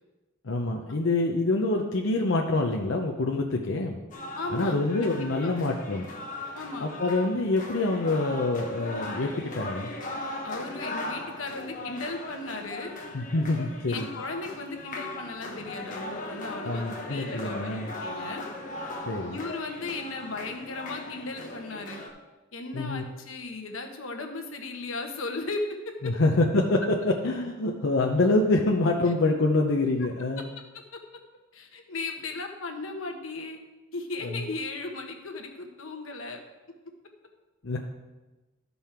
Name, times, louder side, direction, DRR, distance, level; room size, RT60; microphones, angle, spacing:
voice 1, 0.4-4.0 4.5-6.1 6.8-9.9 13.1-14.1 16.6-17.9 19.1-19.4 22.7-23.0 26.0-30.5 34.2-34.4 37.6-37.8, left 2 dB, 65° left, 0 dB, 0.7 m, -26 dB
sound 1, 4.1-22.1, left 2 dB, 40° left, 1.3 m, -38 dB
voice 2, 4.3-4.8 5.4-5.6 6.5-6.9 10.4-13.0 13.9-18.4 19.3-22.0 22.5-26.2 30.7-31.0 31.5-33.6 33.9-36.4, left 3 dB, 85° left, 4 dB, 1.2 m, -36 dB
12.5 x 5.5 x 4.4 m, 1.1 s
head